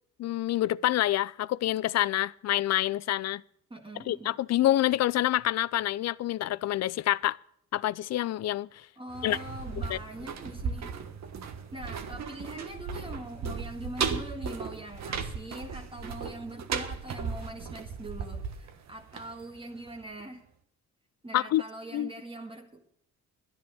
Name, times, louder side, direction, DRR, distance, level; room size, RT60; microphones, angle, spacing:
voice 1, 0.2-3.4 4.1-7.4 7.7-8.9 9.2-9.4 9.9-10.0 21.3-21.6 21.9-22.1, left 14 dB, 60° left, 0.5 m, -27 dB
voice 2, 3.7-4.4 9.0-11.0 11.7-20.4 21.2-22.9, right 1 dB, 15° right, 1.7 m, -42 dB
sound 1, 9.1-19.9 20.2-20.3, right 6 dB, 60° right, 1.3 m, -36 dB
12.0 x 10.5 x 6.3 m
cardioid pair, 90°, 30 cm